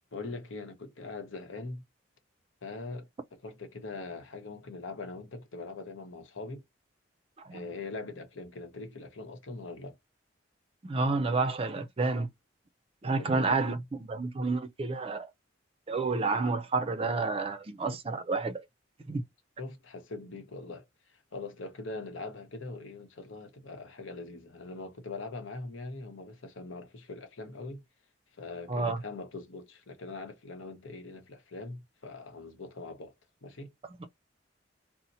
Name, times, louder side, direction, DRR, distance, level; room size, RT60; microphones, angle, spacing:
voice 1, 0.1-1.8 2.6-6.6 7.5-10.0 13.1-13.6 19.6-20.8 21.3-27.8 28.4-33.1 33.4-33.7, left 3 dB, 85° left, 0.9 m, -42 dB
voice 2, 10.8-12.3 13.0-15.3 15.9-18.6 19.1-19.2 28.7-29.0 34.0-34.1, right 3 dB, 30° right, 0.4 m, -30 dB
2.7 x 2.1 x 4.0 m
head